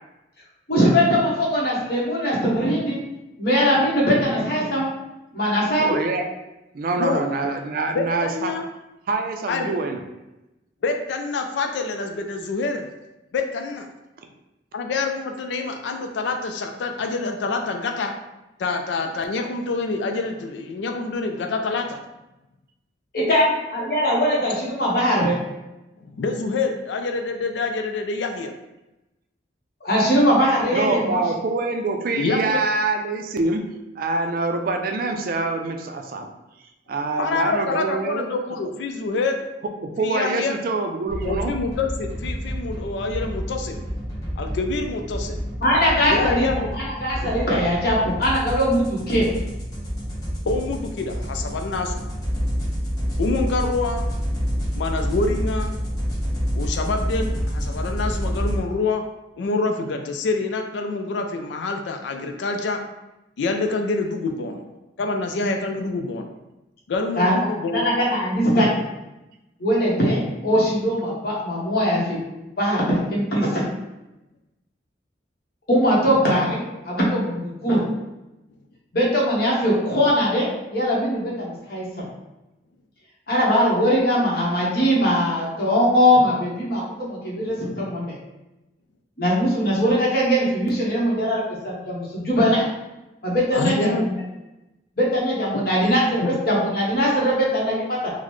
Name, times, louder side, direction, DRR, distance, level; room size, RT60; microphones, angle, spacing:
voice 1, 0.7-3.0 3.4-4.9 5.3-5.9 23.1-25.4 29.8-31.2 45.6-46.5 46.7-49.3 65.4-65.5 67.2-67.3 67.7-68.7 69.6-72.2 72.6-73.7 75.7-77.8 78.9-82.0 83.3-88.1 89.2-92.7 93.2-94.1 95.0-98.1, equal, 60° left, -5 dB, 1.1 m, -21 dB
voice 2, 5.8-6.3 6.7-8.5 9.1-10.0 30.7-33.6 34.0-36.3 36.9-38.3 39.8-41.5, right 3 dB, 55° right, 5 dB, 0.4 m, -25 dB
voice 3, 7.9-8.7 9.5-9.8 10.8-12.9 13.3-13.9 14.7-18.1 18.6-22.0 26.0-28.5 32.2-32.6 37.2-39.4 40.0-40.6 41.2-43.8 44.4-45.4 46.1-46.7 50.5-52.1 53.2-54.1 54.7-55.8 56.6-59.0 59.4-62.8 63.4-64.6 65.0-66.3 66.9-67.9 93.5-94.0 96.2-96.3, left 3 dB, 80° left, 4 dB, 0.4 m, -26 dB
sound 1, 41.1-58.6, equal, 20° left, 0.9 m, -28 dB
3.9 x 2.1 x 3.1 m, 0.97 s
head